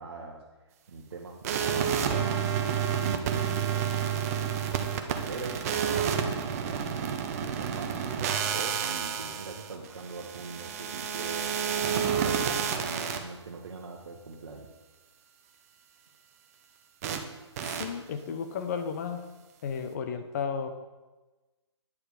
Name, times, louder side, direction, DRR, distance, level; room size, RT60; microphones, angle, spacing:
voice 1, 0.0-4.8 5.1-6.9 7.3-7.9 8.5-11.6 11.9-14.7, right 4 dB, 55° right, -2 dB, 1.3 m, -42 dB
sound 1, 1.4-13.2 17.0-17.2 17.6-17.8, right 8 dB, 30° right, 0.8 m, -30 dB
voice 2, 17.8-19.3 19.6-20.7, left 6 dB, 35° left, 8 dB, 0.7 m, -33 dB
9.8 x 6.5 x 5.0 m, 1.2 s
figure-of-eight pair, 135°, 15 cm